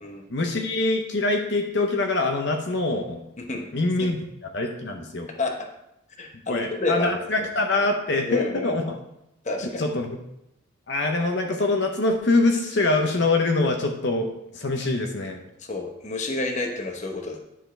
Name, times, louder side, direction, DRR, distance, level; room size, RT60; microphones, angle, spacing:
voice 1, 0.3-3.2 3.7-4.2 4.5-5.3 6.5-9.0 9.6-10.2 10.9-15.4, left 2 dB, 60° left, 3 dB, 0.8 m, -24 dB
voice 2, 3.4-3.7 4.0-4.1 5.4-5.5 6.2-7.5 8.2-8.7 9.4-9.8 15.6-17.4, left 2 dB, 35° left, 3 dB, 1.0 m, -29 dB
10.0 x 6.9 x 3.3 m, 0.83 s
head